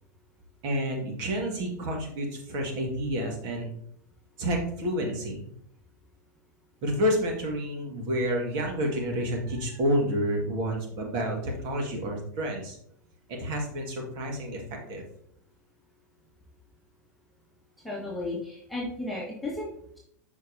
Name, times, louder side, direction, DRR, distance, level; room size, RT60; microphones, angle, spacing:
voice 1, 0.6-3.7 4.4-5.4 6.8-12.8 13.3-15.0, equal, 45° right, 1 dB, 1.8 m, -29 dB
voice 2, 17.8-19.7, left 2 dB, ahead, -5 dB, 1.7 m, -34 dB
6.5 x 5.3 x 2.7 m, 0.68 s
hypercardioid pair, 100°, 10 cm